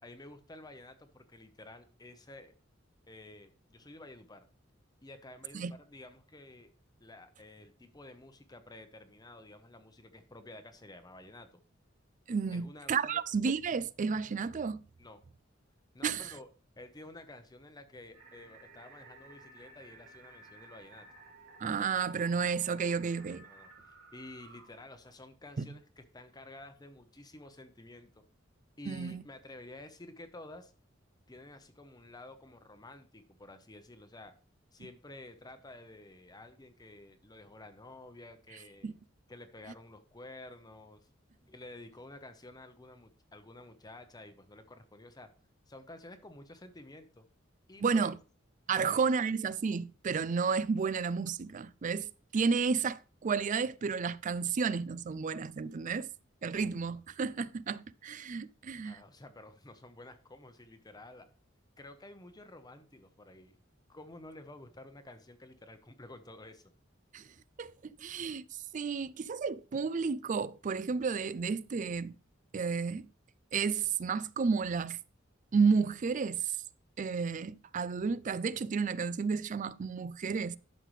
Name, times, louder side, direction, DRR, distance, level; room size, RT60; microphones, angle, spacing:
voice 1, 0.0-2.5 3.1-4.4 5.0-6.7 7.0-11.6 12.5-13.2 15.0-15.2 15.9-16.5 16.8-21.1 23.4-28.2 28.8-30.7 31.3-34.3 34.7-38.9 39.3-41.1 41.5-45.3 45.7-47.2 47.7-48.1 48.8-49.0 58.8-61.3 61.8-63.6 63.9-66.6, left 2 dB, 20° left, 0.9 m, -51 dB
voice 2, 12.3-14.8 16.0-16.3 21.6-23.5 25.6-25.7 28.9-29.2 38.8-39.0 47.8-48.1 48.7-56.1 56.4-59.0 67.1-67.2 67.6-67.7 68.0-68.4 68.7-72.1 72.5-73.1 73.5-75.0 75.5-76.6 77.0-80.6, right 5 dB, 40° right, 0.4 m, -32 dB
sound 1, 18.1-24.7, right 3 dB, 85° right, 2.9 m, -55 dB
11.5 x 6.6 x 3.2 m
head